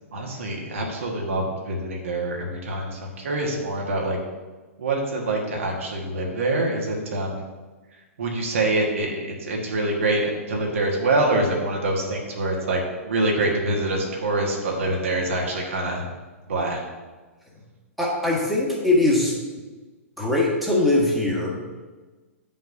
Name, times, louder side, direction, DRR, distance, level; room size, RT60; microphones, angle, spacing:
voice 1, 0.1-4.2 4.8-7.4 8.2-16.1 16.5-16.9, right 2 dB, 65° right, -1 dB, 1.5 m, -25 dB
voice 2, 18.0-19.4 20.2-21.6, left 2 dB, ahead, -6 dB, 1.8 m, -21 dB
8.9 x 5.5 x 2.7 m, 1.2 s
figure-of-eight pair, 110°, 8 cm